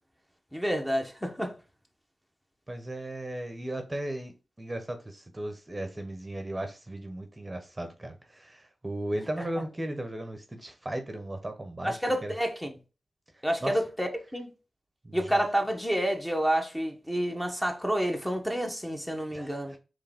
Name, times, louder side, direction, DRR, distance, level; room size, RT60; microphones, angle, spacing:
voice 1, 0.5-1.5 11.8-12.7 13.4-14.5 15.1-19.7, equal, 5° left, 1.0 m, -29 dB
voice 2, 2.7-12.0 12.2-12.3 13.6-13.8 15.0-15.4 19.3-19.8, right 1 dB, 25° right, 0.9 m, -36 dB
4.6 x 3.1 x 3.5 m
cardioid pair, 50°, 0 cm